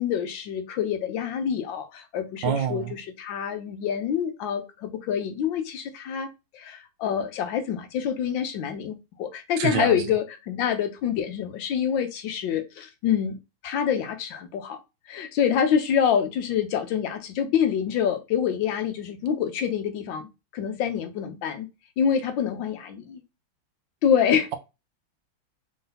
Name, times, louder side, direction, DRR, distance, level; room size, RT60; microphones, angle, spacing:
voice 1, 0.0-6.3 6.5-14.8 15.1-21.7 22.0-23.2 24.0-24.5, left 8 dB, 75° left, 1.3 m, -26 dB
voice 2, 2.4-2.9 9.6-9.9, right 9 dB, 75° right, 1.2 m, -26 dB
3.8 x 2.6 x 3.9 m
omnidirectional pair, 2.2 m